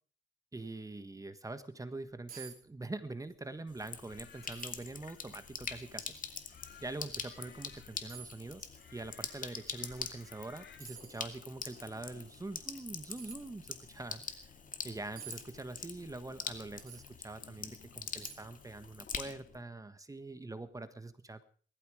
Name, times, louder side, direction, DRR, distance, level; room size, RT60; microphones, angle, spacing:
voice 1, 0.5-6.4 6.8-14.5 14.8-21.4, right 2 dB, 15° right, 11 dB, 1.4 m, -44 dB
sound 1, 2.3-2.6 2.9-3.4 3.8-3.9 4.5-4.9 5.6-5.7 7.2-7.3 8.1-8.4 10.2-10.4 10.8-11.3 13.1-13.4 15.2-15.4 16.8-17.1 17.6-17.7 18.2-18.6 18.9-19.0, right 8 dB, 45° right, 5.4 m, -50 dB
Sink (filling or washing), 3.7-19.6, left 5 dB, 40° left, 2.4 m, -45 dB
sound 2, 4.1-10.8, left 7 dB, 60° left, 3.4 m, -60 dB
19.5 x 14.0 x 5.1 m, 0.43 s
cardioid pair, 90°, 20 cm